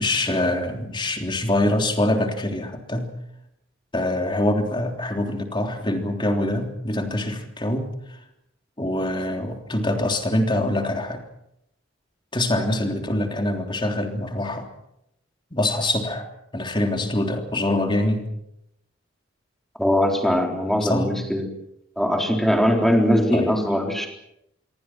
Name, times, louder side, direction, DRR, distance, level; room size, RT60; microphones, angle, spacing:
voice 1, 0.0-3.1 3.9-8.2 8.8-11.2 12.3-14.7 15.5-16.3 16.5-18.3 20.8-21.1 23.3-23.5, left 1 dB, 25° left, 3 dB, 3.4 m, -24 dB
voice 2, 19.8-21.5 22.0-24.1, equal, ahead, 2 dB, 3.9 m, -21 dB
26.5 x 23.5 x 6.2 m, 0.81 s
head